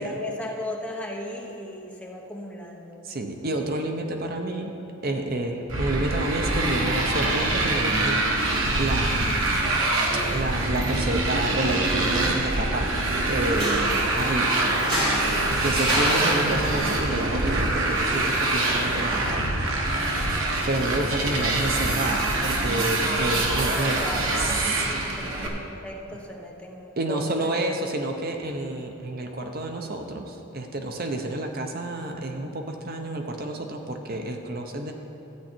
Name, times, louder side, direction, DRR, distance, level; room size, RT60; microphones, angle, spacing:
voice 1, 0.0-3.1 23.8-27.6, left 1 dB, 5° left, -1 dB, 1.0 m, -36 dB
voice 2, 3.0-4.7 5.0-9.9 10.3-12.9 13.3-14.6 15.6-19.6 20.2-24.0 24.4-25.0 27.0-34.9, right 2 dB, 45° right, 4 dB, 0.8 m, -29 dB
Motorcycle, 5.7-25.5, right 2 dB, 75° right, 1.3 m, -25 dB
sound 1, 13.4-20.4, equal, 25° right, 2.6 m, -32 dB
12.5 x 9.1 x 4.4 m, 2.9 s
head